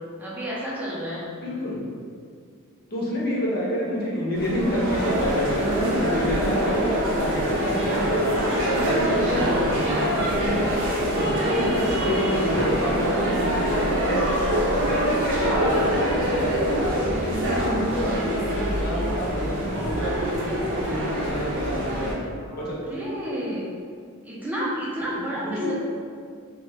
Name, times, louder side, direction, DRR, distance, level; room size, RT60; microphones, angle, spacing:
voice 1, 0.2-1.2 11.4-11.7 22.4-23.7 24.2-25.7, equal, 10° right, -7 dB, 0.5 m, -31 dB
voice 2, 1.4-1.9 2.9-10.8 11.1-11.3 11.5-16.8 17.2-22.8 25.2-25.7, equal, 45° left, -5 dB, 0.7 m, -28 dB
sound 1, 4.3-22.1, equal, 55° right, 0.6 m, -24 dB
2.8 x 2.1 x 3.3 m, 2.2 s
head